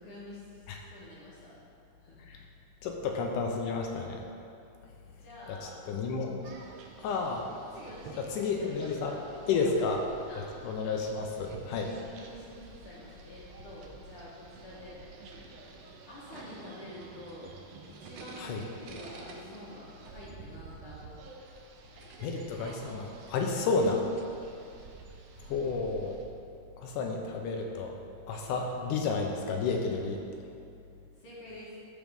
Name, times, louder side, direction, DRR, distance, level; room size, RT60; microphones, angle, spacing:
voice 1, 0.0-1.5 2.0-2.3 5.0-5.8 7.7-9.9 10.3-10.5 12.2-15.0 16.1-17.5 17.9-21.0 31.1-31.8, left 1 dB, 55° left, -7 dB, 1.7 m, -48 dB
voice 2, 2.8-4.2 5.5-6.4 7.0-7.5 8.2-9.2 9.5-10.0 10.6-11.9 18.4-18.6 22.2-24.0 25.4-26.2 26.8-28.0 28.3-30.2, left 4 dB, 80° left, 2 dB, 2.1 m, -31 dB
sound 1, 6.4-26.3, right 4 dB, 80° right, 1.5 m, -50 dB
13.5 x 5.0 x 3.6 m, 2.6 s
omnidirectional pair, 3.8 m